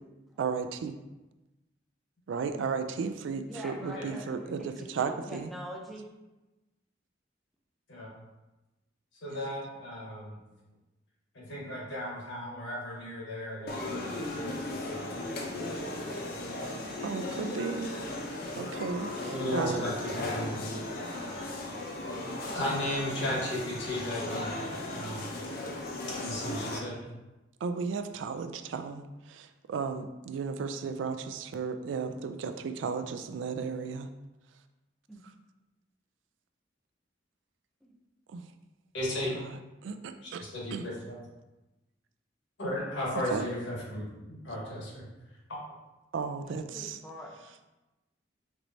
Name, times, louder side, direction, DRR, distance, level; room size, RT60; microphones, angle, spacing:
voice 1, 0.4-1.0 2.3-5.5 9.3-9.6 17.0-17.9 18.6-19.9 27.6-34.1 35.2-35.3 38.3-38.5 39.3-40.4 40.7-40.9 43.1-43.5 46.1-47.0, right 5 dB, 90° right, 9 dB, 0.3 m, -35 dB
voice 2, 3.5-6.1 20.9-21.1 35.1-35.2 37.8-37.9 46.5-47.4, equal, ahead, -2 dB, 0.5 m, -44 dB
voice 3, 9.2-10.4 11.3-16.4 19.3-20.6 21.3-21.5 22.4-25.2 26.1-27.0 38.9-39.3 40.2-41.2 42.6-45.0 45.5-45.6, left 1 dB, 85° left, -4 dB, 1.2 m, -36 dB
sound 1, 13.7-26.8, left 1 dB, 55° left, 0.5 m, -36 dB
4.4 x 3.1 x 2.6 m, 1.0 s
head